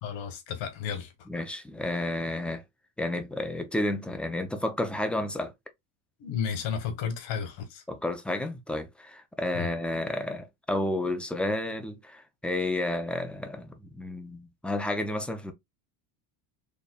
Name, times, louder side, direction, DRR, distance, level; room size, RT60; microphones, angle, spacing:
voice 1, 0.0-1.1 6.2-7.8 9.5-9.7, left 7 dB, 70° left, 1.5 m, -33 dB
voice 2, 1.3-2.6 3.0-5.5 7.9-15.5, left 1 dB, ahead, 0.6 m, -31 dB
4.1 x 3.5 x 2.4 m
cardioid pair, 120°, 48 cm